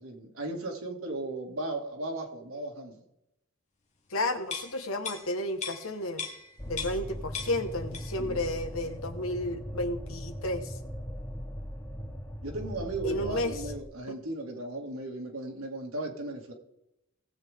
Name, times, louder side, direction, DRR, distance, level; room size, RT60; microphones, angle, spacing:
voice 1, 0.0-2.9 8.2-8.4 12.4-16.5, right 2 dB, 90° right, 1 dB, 2.5 m, -36 dB
voice 2, 4.1-6.2 6.6-10.8 13.0-13.6 14.1-14.2, left 1 dB, 85° left, 7 dB, 1.5 m, -32 dB
sound 1, 4.4-7.1 7.3-8.3 8.6-8.8, left 6 dB, 35° left, 1.8 m, -39 dB
sound 2, 6.6-13.8, equal, 10° left, 0.8 m, -39 dB
18.0 x 8.0 x 3.7 m, 0.85 s
head